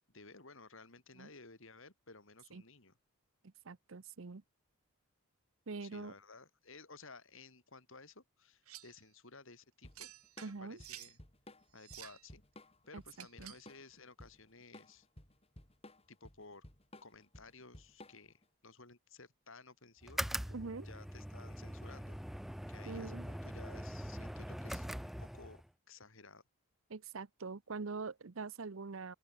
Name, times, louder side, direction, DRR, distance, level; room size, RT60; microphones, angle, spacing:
voice 1, 0.1-2.9 5.8-10.1 10.6-11.2 11.7-12.4 12.9-15.1 16.1-16.6 17.0-22.2 22.7-25.6 25.9-26.4, left 3 dB, 60° left, 3.0 m, -56 dB
voice 2, 3.6-4.4 5.7-6.1 10.4-10.8 12.9-13.5 20.5-20.9 22.9-23.3 26.9-29.1, right 4 dB, 60° right, 0.7 m, -44 dB
sound 1, 8.7-9.0 9.9-11.2 11.7-12.3 13.1-13.7, right 13 dB, 75° right, 3.0 m, -52 dB
Drum kit / Drum, 9.8-18.4, left 1 dB, 25° left, 5.5 m, -56 dB
sound 2, 20.0-25.7, equal, ahead, 0.3 m, -42 dB
open air
head